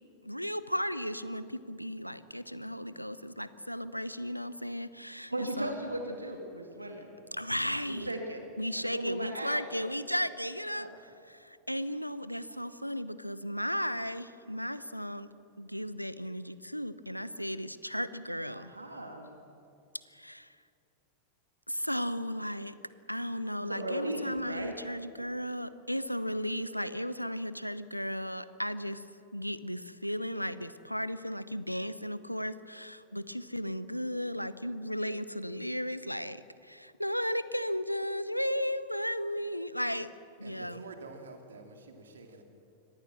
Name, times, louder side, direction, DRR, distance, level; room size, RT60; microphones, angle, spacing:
voice 1, 0.2-5.7 7.3-8.1 8.6-10.9 11.3-15.3 15.6-18.7 20.1-20.6 21.7-22.8 23.1-29.0 29.3-40.1 40.4-40.8, equal, 90° left, 15 dB, 0.7 m, -35 dB
voice 2, 5.3-7.1 7.9-8.4 8.8-9.8 10.2-10.3 10.7-10.9 18.5-19.3 23.6-24.8, right 1 dB, 85° right, 4 dB, 2.2 m, -37 dB
voice 3, 40.4-42.4, right 3 dB, 70° right, 5 dB, 2.8 m, -48 dB
24.0 x 18.5 x 7.5 m, 2.6 s
figure-of-eight pair, 90°, 0 cm